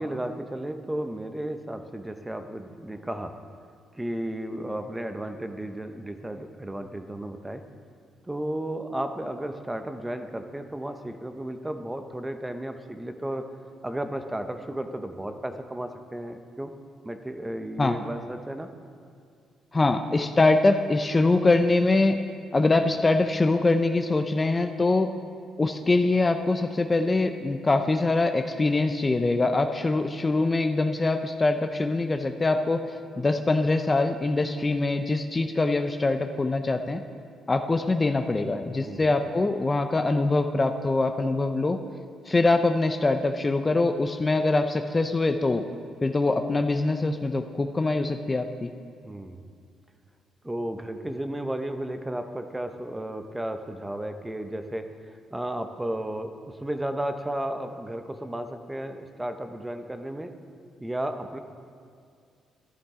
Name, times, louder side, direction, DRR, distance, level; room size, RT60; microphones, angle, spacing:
voice 1, 0.0-3.4 3.9-7.6 8.2-13.4 13.8-16.7 17.0-18.7 38.8-39.2 49.0-49.4 50.4-54.9 55.3-60.3 60.8-61.4, right 1 dB, 10° right, 7 dB, 0.7 m, -33 dB
voice 2, 19.7-22.2 22.5-25.1 25.6-32.8 33.2-37.0 37.5-41.8 42.3-45.6 46.0-48.7, left 2 dB, 25° left, 7 dB, 0.5 m, -23 dB
13.0 x 11.0 x 3.7 m, 2.3 s
cardioid pair, 90°, 0 cm